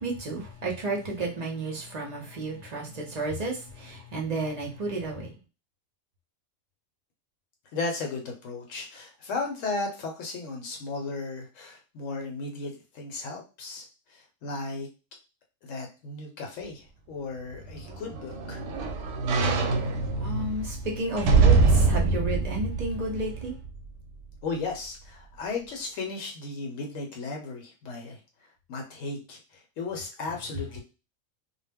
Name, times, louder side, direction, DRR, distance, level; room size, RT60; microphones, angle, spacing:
voice 1, 0.0-5.3 20.2-23.5, right 2 dB, 40° right, 0.6 m, -32 dB
voice 2, 7.7-14.9 15.6-18.6 24.4-28.2 28.7-30.8, left 3 dB, 75° left, 1.0 m, -35 dB
sound 1, 17.5-23.9 24.3-24.4, right 4 dB, 70° right, 0.8 m, -24 dB
2.2 x 2.0 x 3.4 m
omnidirectional pair, 1.4 m